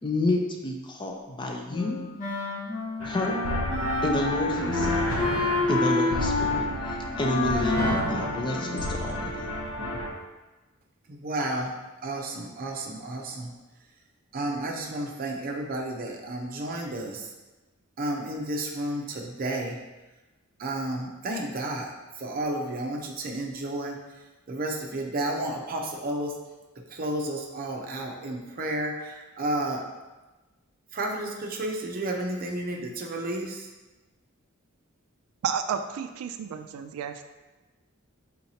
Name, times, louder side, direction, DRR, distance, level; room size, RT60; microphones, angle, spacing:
voice 1, 0.0-2.0 3.1-3.4 4.0-6.7 7.2-9.3, left 2 dB, 20° left, 2 dB, 0.4 m, -30 dB
Wind instrument woodwind instrument, 1.7-9.2, left 2 dB, 40° left, 1.1 m, -29 dB
sound 1, 3.0-10.1, left 1 dB, 70° left, 0.7 m, -31 dB
voice 2, 11.1-11.7 12.0-13.5 14.3-17.3 18.0-19.8 20.6-21.9 22.2-23.9 24.5-26.3 26.9-29.8 30.9-33.7, right 1 dB, 45° right, 0 dB, 0.6 m, -31 dB
voice 3, 35.4-37.2, right 7 dB, 90° right, 9 dB, 0.3 m, -31 dB
4.4 x 3.8 x 2.7 m, 1.2 s
head